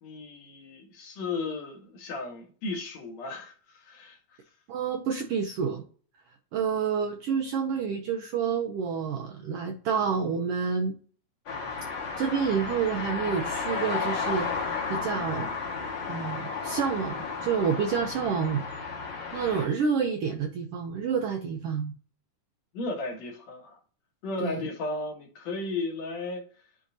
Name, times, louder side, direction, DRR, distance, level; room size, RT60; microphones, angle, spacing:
voice 1, 0.0-4.4 22.7-23.8 24.2-26.4, left 3 dB, 65° left, 2.4 m, -35 dB
voice 2, 4.7-5.8 6.5-10.9 12.2-14.5 14.9-15.5 16.1-19.0 19.3-21.9 24.4-24.7, right 6 dB, 80° right, 1.3 m, -29 dB
sound 1, 11.5-19.7, left 5 dB, 45° left, 1.9 m, -33 dB
10.0 x 3.6 x 2.8 m
omnidirectional pair, 3.5 m